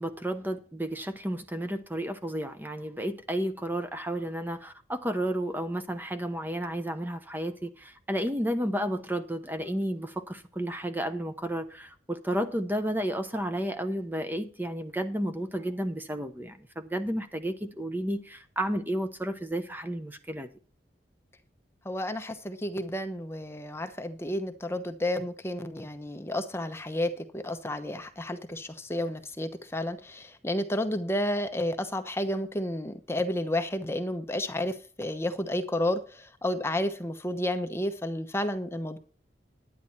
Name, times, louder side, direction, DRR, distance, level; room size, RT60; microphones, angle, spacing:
voice 1, 0.0-20.5, right 1 dB, 10° right, 0.9 m, -32 dB
voice 2, 21.8-39.0, left 1 dB, 15° left, 0.9 m, -31 dB
10.5 x 9.8 x 4.3 m
head